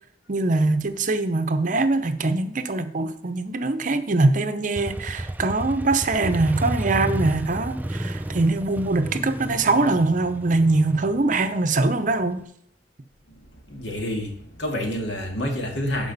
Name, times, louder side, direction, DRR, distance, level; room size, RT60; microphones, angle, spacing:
voice 1, 0.3-12.4, right 2 dB, 45° right, 10 dB, 0.7 m, -22 dB
Motorcycle, 4.8-12.4, right 1 dB, 10° right, 0.3 m, -32 dB
voice 2, 13.7-16.1, left 1 dB, 85° left, 2 dB, 2.1 m, -28 dB
12.0 x 5.1 x 4.0 m, 0.67 s
head